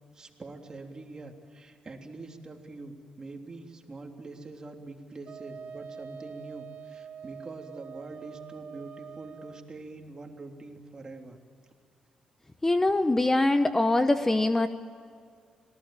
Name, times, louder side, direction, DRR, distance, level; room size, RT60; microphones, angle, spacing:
voice 1, 0.1-11.4, right 3 dB, 30° right, 3 dB, 3.3 m, -44 dB
Wind instrument woodwind instrument, 5.3-9.7, right 7 dB, 60° right, 1.2 m, -44 dB
voice 2, 12.6-14.7, left 2 dB, 15° left, 9 dB, 0.9 m, -23 dB
26.5 x 19.0 x 9.0 m, 2.3 s
cardioid pair, 105°, 2 cm